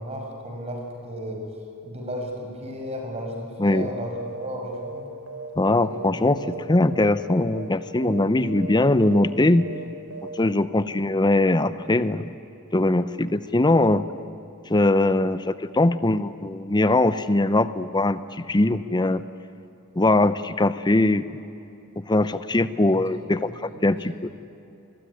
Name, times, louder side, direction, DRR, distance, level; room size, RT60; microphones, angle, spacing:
voice 1, 0.0-1.4 1.8-4.1 4.4-5.1 5.8-6.0 6.4-6.5 22.5-23.3 23.7-23.8, equal, 30° right, 2 dB, 5.7 m, -34 dB
voice 2, 3.6-3.9 5.6-6.4 6.7-9.7 10.4-12.3 12.7-14.0 14.7-19.2 20.0-21.2 22.1-24.3, left 2 dB, 20° left, 13 dB, 0.7 m, -21 dB
sound 1, 3.6-4.5 4.7-6.1 6.3-6.6 6.9-7.2 7.4-7.7 8.0-8.2 8.5-8.8 9.0-9.3 9.6-9.8 10.1-10.4, right 4 dB, 80° right, 4.7 m, -37 dB
26.5 x 21.5 x 9.7 m, 2.8 s
head